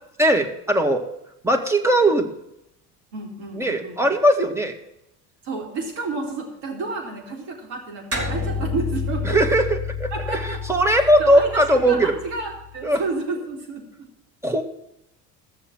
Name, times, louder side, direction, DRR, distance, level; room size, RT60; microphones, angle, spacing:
voice 1, 0.2-1.0 1.4-2.3 3.6-4.8 9.2-12.1 12.8-13.0 14.4-14.6, right 1 dB, 5° right, 3 dB, 2.0 m, -19 dB
voice 2, 3.1-4.1 5.4-9.4 10.1-10.6 10.9-13.8, right 3 dB, 60° right, 1 dB, 4.0 m, -31 dB
sound 1, 8.1-12.9, left 4 dB, 30° right, 4.9 m, -30 dB
15.0 x 7.0 x 7.4 m, 0.81 s
hypercardioid pair, 65°, 50 cm